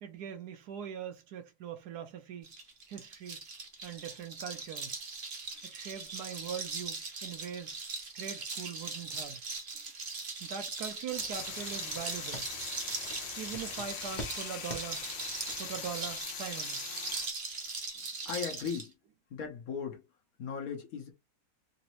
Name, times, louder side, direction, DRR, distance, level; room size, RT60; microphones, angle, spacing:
voice 1, 0.0-2.5 2.9-3.4 3.8-5.0 5.6-7.8 8.1-9.4 10.4-12.5 13.4-15.0 15.6-16.8, right 8 dB, 70° right, 1.1 m, -42 dB
sound 1, 2.4-18.9, right 4 dB, 40° right, 0.8 m, -40 dB
sound 2, 11.1-16.2, left 1 dB, 30° left, 0.9 m, -47 dB
sound 3, 11.3-17.3, left 9 dB, 80° left, 1.4 m, -42 dB
voice 2, 17.9-18.9 19.3-20.0 20.4-21.1, left 6 dB, 60° left, 1.1 m, -38 dB
4.0 x 2.6 x 3.0 m
omnidirectional pair, 1.9 m